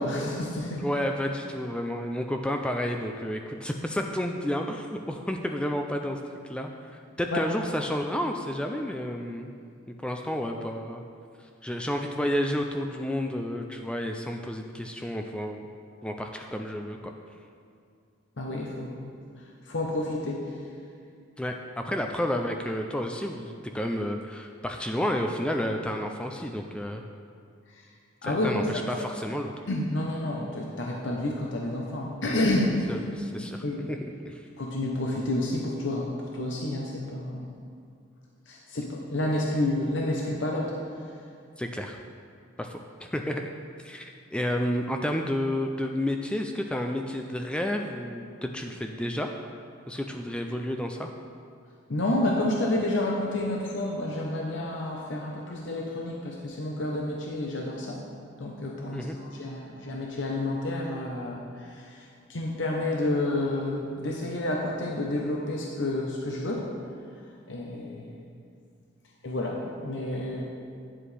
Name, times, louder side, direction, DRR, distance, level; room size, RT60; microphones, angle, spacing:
voice 1, 0.0-0.9 7.3-7.4 18.4-19.1 19.7-20.4 28.2-28.6 29.7-32.9 33.6-33.9 34.6-37.5 38.5-40.7 51.9-58.0 58.4-62.0 62.3-66.7 67.5-68.2 69.2-70.4, left 1 dB, 65° left, -2 dB, 0.8 m, -29 dB
voice 2, 0.8-6.2 6.5-6.7 7.2-9.5 9.9-11.0 11.6-15.7 16.0-17.1 21.4-27.0 28.2-29.5 32.9-34.4 41.6-42.0 42.6-43.5 43.8-49.3 49.9-51.1 58.9-59.2, equal, 5° left, 3 dB, 0.3 m, -31 dB
9.7 x 7.5 x 3.3 m, 2.3 s
head